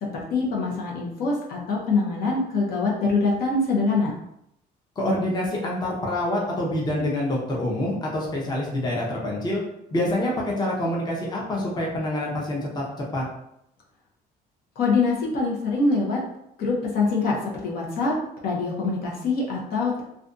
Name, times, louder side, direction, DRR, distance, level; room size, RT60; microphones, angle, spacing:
voice 1, 0.0-4.1 14.8-16.2 16.6-17.4 17.6-18.1 18.4-20.0, left 3 dB, 65° left, -2 dB, 0.7 m, -24 dB
voice 2, 5.0-9.6 9.9-12.8 13.1-13.2, left 1 dB, 25° left, -3 dB, 0.7 m, -26 dB
2.5 x 2.3 x 2.5 m, 0.78 s
cardioid pair, 110°, 17 cm